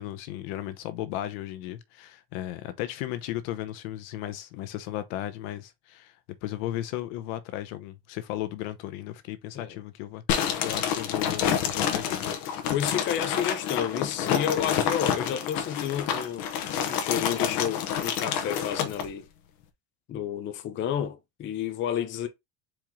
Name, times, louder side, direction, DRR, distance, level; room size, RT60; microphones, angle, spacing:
voice 1, 0.0-6.1 6.4-12.2, left 13 dB, 75° left, 1.0 m, -35 dB
sound 1, 10.3-19.1, left 8 dB, 55° left, 1.0 m, -28 dB
voice 2, 12.7-16.5 16.9-19.3 20.1-22.3, left 9 dB, 30° left, 0.6 m, -30 dB
4.6 x 3.0 x 3.6 m
cardioid pair, 160°, 42 cm